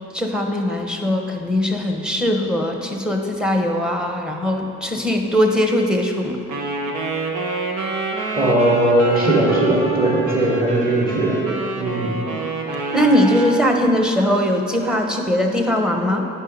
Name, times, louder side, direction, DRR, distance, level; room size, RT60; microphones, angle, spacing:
voice 1, 0.1-6.4 12.9-16.3, equal, 5° right, 3 dB, 1.0 m, -20 dB
Wind instrument woodwind instrument, 6.5-13.6, right 2 dB, 80° right, 1.2 m, -27 dB
voice 2, 8.4-11.4 11.8-12.1, right 1 dB, 30° right, -4 dB, 2.1 m, -18 dB
10.0 x 5.5 x 5.4 m, 2.5 s
cardioid pair, 95°, 30 cm